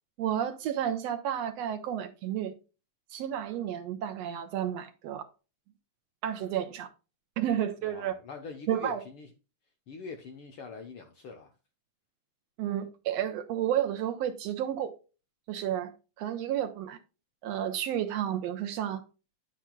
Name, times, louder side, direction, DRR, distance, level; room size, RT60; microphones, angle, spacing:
voice 1, 0.2-2.5 3.1-5.3 6.2-6.9 7.4-8.1 8.7-9.0 12.6-15.0 15.5-15.9 16.2-17.0 17.4-19.0, right 10 dB, 75° right, 1.7 m, -31 dB
voice 2, 7.8-9.3 9.9-11.5, left 4 dB, 70° left, 1.3 m, -43 dB
9.6 x 7.4 x 2.2 m
omnidirectional pair, 3.4 m